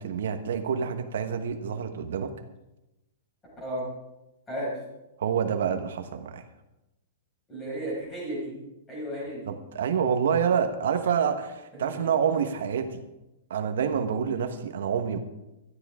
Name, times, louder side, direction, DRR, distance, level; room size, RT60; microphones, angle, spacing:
voice 1, 0.0-2.3 5.2-6.4 9.5-13.0 13.5-15.2, right 7 dB, 70° right, 7 dB, 1.2 m, -27 dB
voice 2, 7.5-8.5 8.9-9.5 11.7-11.9, right 1 dB, 10° left, -5 dB, 5.5 m, -33 dB
17.5 x 13.0 x 3.6 m, 0.97 s
supercardioid pair, 180°, 0 cm